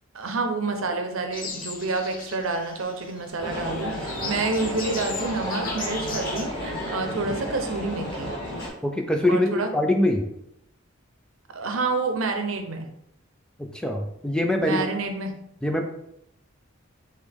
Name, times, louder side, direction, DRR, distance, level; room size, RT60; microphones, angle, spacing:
voice 1, 0.1-8.3 9.3-9.7 11.5-12.9 14.6-15.4, right 3 dB, 75° right, 6 dB, 0.7 m, -28 dB
sound 1, 1.3-6.5, left 4 dB, 40° left, 0.6 m, -38 dB
sound 2, 3.4-8.7, equal, 20° left, 1.8 m, -32 dB
voice 2, 8.8-10.3 13.6-14.9 15.6-15.9, left 1 dB, 5° left, 3 dB, 0.3 m, -23 dB
4.9 x 3.0 x 3.4 m, 0.77 s
head